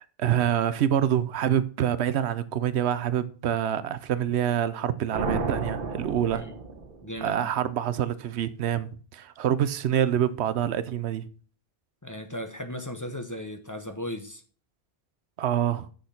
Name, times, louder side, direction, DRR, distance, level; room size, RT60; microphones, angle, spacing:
voice 1, 0.2-6.4 7.2-11.3 15.4-15.9, right 10 dB, 85° right, 0.9 m, -26 dB
sound 1, 5.1-7.4, right 4 dB, 55° right, 1.2 m, -32 dB
voice 2, 7.0-7.5 12.0-14.4, left 1 dB, 20° left, 0.8 m, -36 dB
6.6 x 6.4 x 5.7 m
omnidirectional pair, 1.1 m